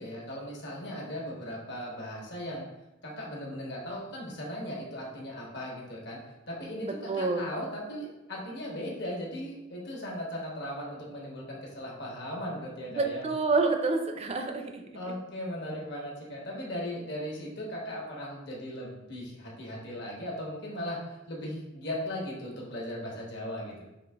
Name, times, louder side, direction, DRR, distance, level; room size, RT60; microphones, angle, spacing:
voice 1, 0.0-2.6 3.0-6.2 6.5-13.2 14.9-23.9, equal, 65° left, -3 dB, 1.2 m, -38 dB
voice 2, 6.8-7.5 12.9-14.8, right 3 dB, 35° right, 5 dB, 0.4 m, -28 dB
4.9 x 2.8 x 3.4 m, 0.96 s
head